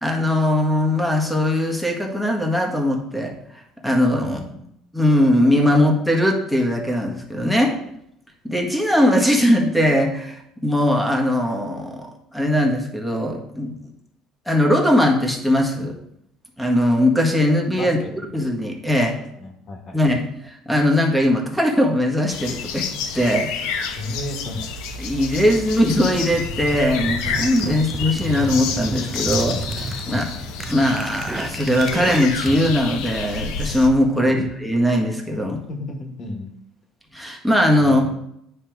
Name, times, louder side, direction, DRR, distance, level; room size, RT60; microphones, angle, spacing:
voice 1, 0.0-3.3 3.8-4.4 4.9-7.7 8.4-13.7 14.5-15.9 16.6-18.0 18.3-19.2 19.9-22.9 23.1-24.0 25.0-30.2 30.7-35.6 37.1-38.2, left 1 dB, ahead, 1 dB, 1.4 m, -20 dB
voice 2, 4.2-4.6 7.7-7.8 17.8-18.1 19.4-20.1 24.0-24.7 30.0-30.3 34.1-34.4 35.7-36.5 37.8-38.2, left 2 dB, 40° left, 3 dB, 1.5 m, -33 dB
sound 1, 22.3-33.9, left 6 dB, 90° left, 0.9 m, -30 dB
sound 2, 26.3-32.7, right 3 dB, 15° right, 0.6 m, -31 dB
9.8 x 3.3 x 4.6 m, 0.75 s
cardioid pair, 125°, 0 cm